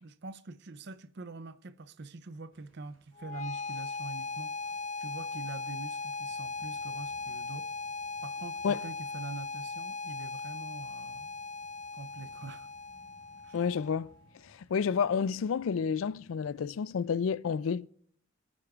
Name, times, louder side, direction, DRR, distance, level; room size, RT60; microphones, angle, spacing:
voice 1, 0.0-7.7 8.2-11.3 11.9-12.7 13.4-13.6, right 3 dB, 55° right, 0.6 m, -45 dB
sound 1, 2.5-17.1, equal, 80° right, 3.1 m, -65 dB
sound 2, 3.1-14.2, left 3 dB, 35° left, 0.8 m, -39 dB
voice 2, 13.5-14.1 14.4-17.9, left 6 dB, 80° left, 0.4 m, -30 dB
26.5 x 9.6 x 2.4 m
head